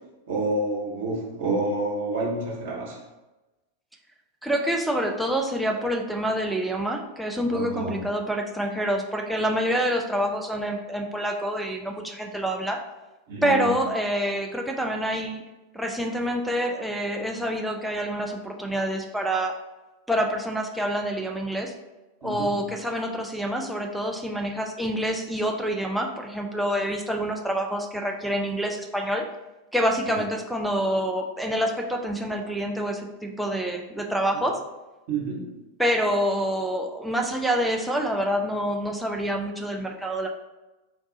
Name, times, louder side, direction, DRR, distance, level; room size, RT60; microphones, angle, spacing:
voice 1, 0.3-3.0 7.5-8.0 13.3-13.7 22.2-22.6 35.1-35.6, right 2 dB, 55° right, -3 dB, 1.1 m, -28 dB
voice 2, 4.4-12.8 13.4-15.4 15.7-19.5 20.1-21.7 22.2-29.2 29.7-34.6 35.8-40.3, equal, ahead, 1 dB, 0.4 m, -27 dB
3.6 x 2.3 x 3.9 m, 1.1 s
figure-of-eight pair, 90°, 0 cm